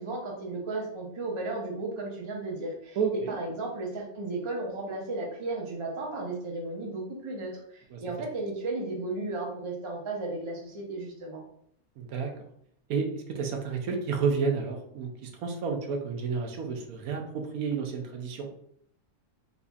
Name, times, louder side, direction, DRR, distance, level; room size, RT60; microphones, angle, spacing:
voice 1, 0.0-11.4, right 2 dB, 35° right, -1 dB, 0.5 m, -34 dB
voice 2, 3.0-3.4 7.9-8.0 12.0-12.3 12.9-18.5, right 5 dB, 75° right, 3 dB, 1.1 m, -31 dB
4.1 x 2.7 x 2.3 m, 0.68 s
omnidirectional pair, 1.6 m